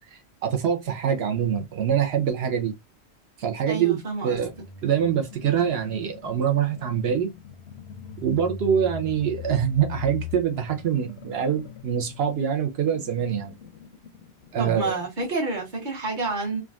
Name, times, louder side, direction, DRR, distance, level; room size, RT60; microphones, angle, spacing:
voice 1, 0.4-2.7 3.4-4.0 4.2-4.5 4.8-7.3 8.2-13.5 14.5-15.0, right 8 dB, 70° right, 0.8 m, -24 dB
voice 2, 3.7-4.7 14.6-16.6, right 3 dB, 50° right, 1.3 m, -29 dB
sound 1, 4.3-14.8, left 7 dB, 85° left, 0.9 m, -41 dB
3.7 x 2.3 x 2.3 m
omnidirectional pair, 1.1 m